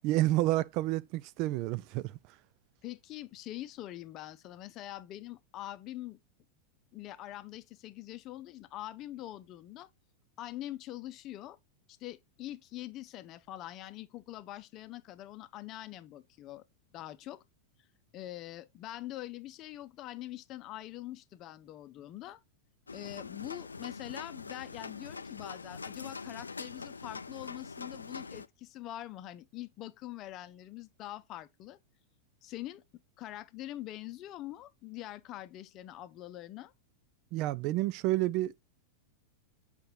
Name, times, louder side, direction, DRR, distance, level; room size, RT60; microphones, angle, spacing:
voice 1, 0.0-2.1 37.3-38.5, right 16 dB, 40° right, 0.3 m, -29 dB
voice 2, 2.8-6.2 6.9-9.9 10.4-11.6 12.0-16.6 16.9-17.4 18.1-22.4 22.9-31.8 32.4-32.8 33.2-36.7, left 14 dB, 35° left, 0.6 m, -44 dB
sound 1, 22.9-28.5, left 4 dB, 75° left, 0.4 m, -43 dB
7.9 x 5.0 x 3.1 m
figure-of-eight pair, 90°, 0 cm